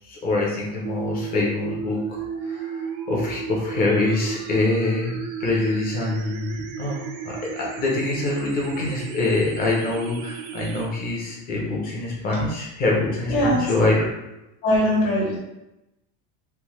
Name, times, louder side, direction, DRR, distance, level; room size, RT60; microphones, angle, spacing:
voice 1, 0.0-5.1 5.4-14.0, left 2 dB, 20° left, -2 dB, 0.5 m, -25 dB
sound 1, 0.8-10.9, right 7 dB, 80° right, 0.6 m, -34 dB
voice 2, 13.3-13.6 14.6-15.4, equal, 60° left, -5 dB, 1.2 m, -21 dB
3.3 x 2.1 x 2.9 m, 0.94 s
cardioid pair, 165°, 42 cm